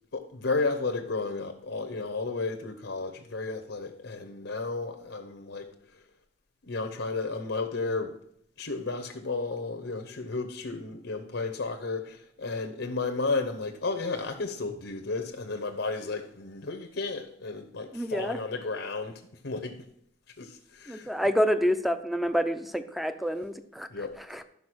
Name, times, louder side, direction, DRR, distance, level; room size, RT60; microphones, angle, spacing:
voice 1, 0.1-6.0 6.6-8.2 8.6-19.9 20.4-21.1 23.9-24.2, left 3 dB, 75° left, 0.9 m, -33 dB
voice 2, 17.9-18.4 20.9-23.9 24.3-24.4, equal, ahead, 0.6 m, -28 dB
13.0 x 5.3 x 6.2 m
head